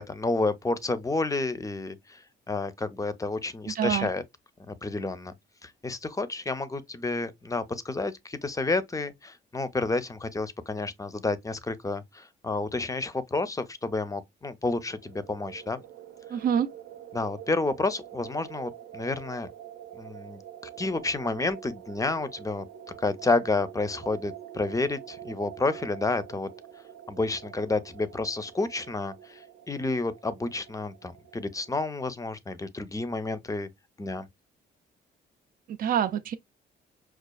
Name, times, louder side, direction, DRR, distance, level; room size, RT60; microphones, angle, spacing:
voice 1, 0.0-2.2 2.5-4.2 4.7-5.3 5.6-15.8 17.1-19.5 20.0-20.4 20.8-22.7 23.0-26.5 27.1-29.4 29.7-33.7 34.0-34.3, left 3 dB, 15° left, 0.5 m, -30 dB
voice 2, 3.7-4.1 16.3-16.7 35.7-36.3, right 9 dB, 45° right, 0.4 m, -26 dB
sound 1, 14.9-31.8, right 10 dB, 65° right, 0.8 m, -46 dB
5.2 x 2.4 x 2.2 m
cardioid pair, 90°, 20 cm